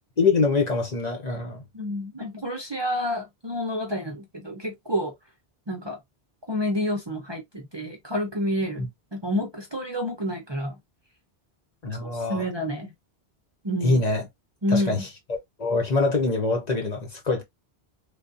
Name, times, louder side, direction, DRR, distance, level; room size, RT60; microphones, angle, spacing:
voice 1, 0.2-1.6 11.8-12.5 13.8-14.2 14.7-17.4, left 3 dB, 45° left, 0.9 m, -24 dB
voice 2, 1.7-5.1 5.7-6.0 6.5-10.8 12.0-12.9 13.6-14.0 14.6-15.1, left 1 dB, 30° right, 0.6 m, -29 dB
3.5 x 2.4 x 2.5 m
omnidirectional pair, 1.1 m